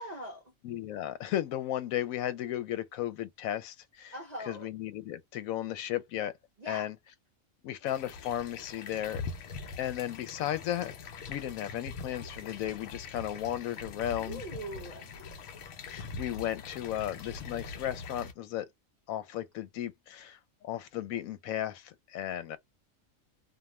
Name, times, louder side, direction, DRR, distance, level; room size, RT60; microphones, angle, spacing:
voice 1, 0.0-0.5 4.1-4.7 6.6-6.9 14.2-15.1, right 1 dB, 45° right, 0.6 m, -41 dB
voice 2, 0.6-4.1 4.5-6.3 6.7-7.0 7.6-9.2 9.8-10.9 11.3-14.4 15.9-18.7 19.1-22.6, left 12 dB, 85° left, 1.0 m, -35 dB
sound 1, 7.9-18.3, left 5 dB, 65° left, 0.7 m, -43 dB
2.4 x 2.3 x 2.9 m
omnidirectional pair, 1.4 m